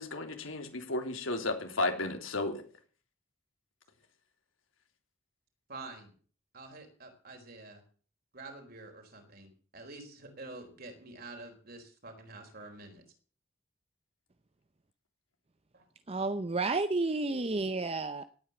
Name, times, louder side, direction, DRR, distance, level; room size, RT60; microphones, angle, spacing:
voice 1, 0.0-2.6, left 2 dB, 80° left, 5 dB, 3.2 m, -33 dB
voice 2, 5.7-6.1 6.5-7.8 8.3-9.5 9.7-13.0, right 2 dB, 50° right, 4 dB, 4.3 m, -47 dB
voice 3, 16.1-18.2, right 3 dB, 30° right, 11 dB, 0.6 m, -31 dB
18.0 x 9.2 x 7.1 m, 0.43 s
head